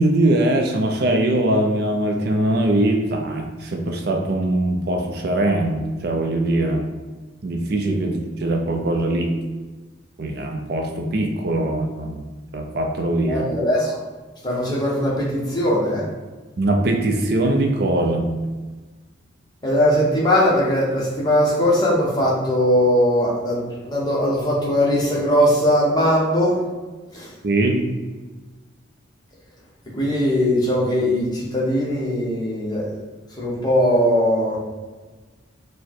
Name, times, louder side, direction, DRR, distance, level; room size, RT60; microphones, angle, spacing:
voice 1, 0.0-6.9 7.4-9.3 10.2-12.2 12.5-13.5 16.6-18.3 27.4-27.8, right 1 dB, 50° right, 2 dB, 0.5 m, -21 dB
voice 2, 13.3-14.0 14.4-16.0 19.6-26.6 27.1-27.3 30.0-32.9 33.4-34.6, equal, 20° left, -5 dB, 0.9 m, -20 dB
4.8 x 2.1 x 4.3 m, 1.3 s
head